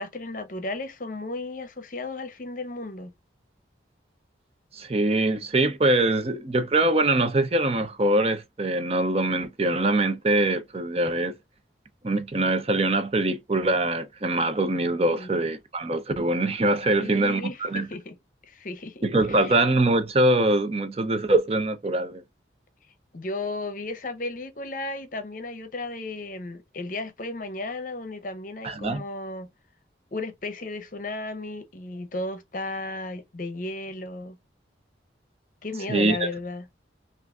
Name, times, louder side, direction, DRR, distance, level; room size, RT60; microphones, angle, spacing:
voice 1, 0.0-3.1 15.2-15.3 17.0-18.2 18.4-19.6 23.1-29.5 30.1-34.4 35.6-36.7, left 2 dB, 45° left, 0.7 m, -34 dB
voice 2, 4.7-11.3 12.0-17.9 19.0-22.2 28.6-29.0 35.9-36.3, right 2 dB, 35° right, 0.6 m, -23 dB
5.9 x 2.5 x 2.3 m
head